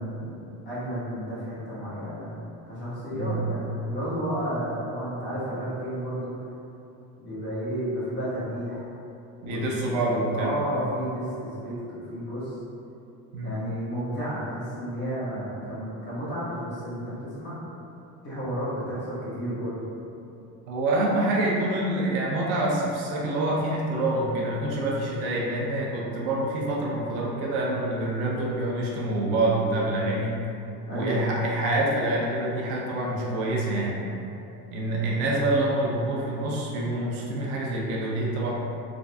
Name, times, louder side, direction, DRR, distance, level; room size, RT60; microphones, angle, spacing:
voice 1, 0.0-2.3 2.6-6.3 7.2-8.9 9.4-12.6 13.4-17.6 18.2-19.9 30.8-31.4, equal, 30° left, -11 dB, 1.5 m, -32 dB
voice 2, 3.1-3.4 9.4-10.5 13.3-13.6 20.7-30.4 30.9-34.0 34.7-38.5, right 1 dB, 80° right, -3 dB, 0.8 m, -26 dB
3.7 x 2.5 x 3.4 m, 2.8 s
cardioid pair, 155°, 38 cm